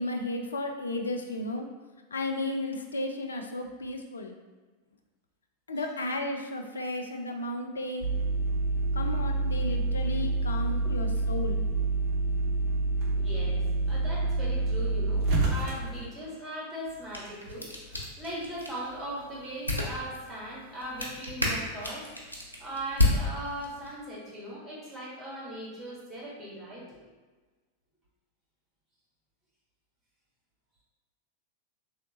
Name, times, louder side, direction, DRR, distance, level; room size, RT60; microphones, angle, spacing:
voice 1, 0.0-1.7 2.1-4.3 5.7-8.1 8.9-11.6, left 2 dB, 70° left, 4 dB, 0.3 m, -34 dB
sound 1, 8.0-16.1, right 2 dB, 40° right, 0.7 m, -27 dB
voice 2, 13.1-22.1 22.6-27.0, right 1 dB, 20° right, -6 dB, 1.4 m, -39 dB
sound 2, 16.8-23.9, left 2 dB, 90° right, 0.5 m, -33 dB
3.1 x 2.8 x 2.9 m, 1.3 s
figure-of-eight pair, 90°, 0 cm